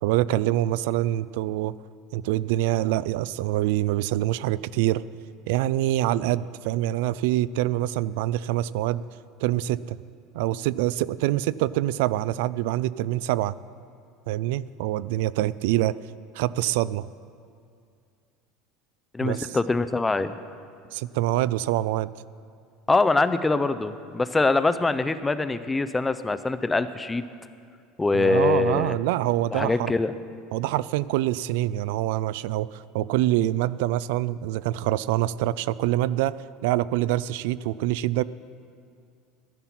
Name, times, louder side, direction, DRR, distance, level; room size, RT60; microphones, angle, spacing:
voice 1, 0.0-1.7 2.1-5.0 5.5-9.0 9.4-10.0 10.3-13.6 14.3-16.0 16.3-17.1 19.2-19.6 20.9-22.1 28.1-29.9 30.5-36.4 36.6-38.2, right 15 dB, 75° right, 19 dB, 0.3 m, -25 dB
voice 2, 19.1-20.4 22.9-27.2 28.0-28.9 29.5-30.1, left 3 dB, 10° left, 12 dB, 0.4 m, -23 dB
12.5 x 11.0 x 5.9 m, 2.3 s
cardioid pair, 165°, 0 cm